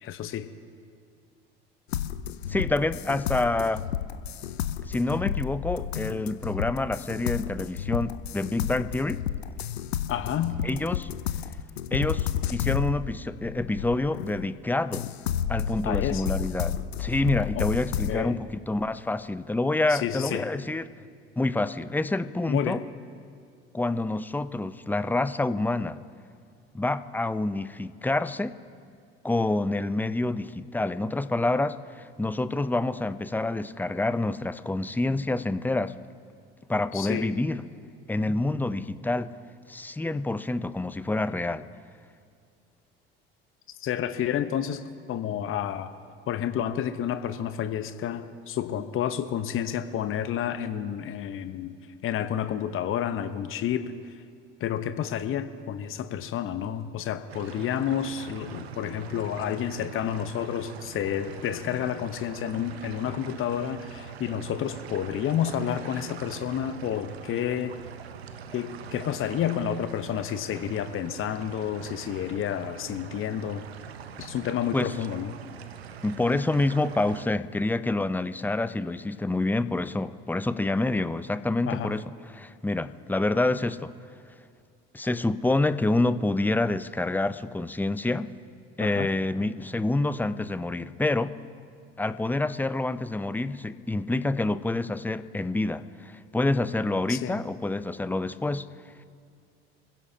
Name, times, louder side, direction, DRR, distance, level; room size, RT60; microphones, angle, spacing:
voice 1, 0.0-0.5 10.1-10.6 15.8-16.3 17.5-17.7 18.1-18.4 19.9-20.5 22.5-22.8 36.9-37.3 43.8-44.8 45.1-45.9 46.3-51.7 52.0-54.2 54.6-67.8 68.5-73.6 74.2-75.3 81.7-82.0 88.8-89.1 97.1-97.4, left 9 dB, 45° left, 10 dB, 0.9 m, -30 dB
sound 1, 1.9-14.5 14.9-18.2, left 9 dB, 85° left, 0.6 m, -31 dB
voice 2, 2.5-3.8 4.8-9.2 10.6-11.1 11.9-15.1 15.5-20.9 21.4-22.8 23.7-26.0 26.7-28.6 29.2-35.9 36.7-37.6 38.1-39.4 39.7-41.7 74.7-74.9 76.0-82.0 82.3-83.9 84.9-88.3 88.8-91.3 92.0-98.7, left 2 dB, 5° left, 13 dB, 0.6 m, -27 dB
sound 2, 57.3-77.3, right 8 dB, 85° right, 0.8 m, -43 dB
26.5 x 16.0 x 2.8 m, 2.3 s
hypercardioid pair, 65°, 31 cm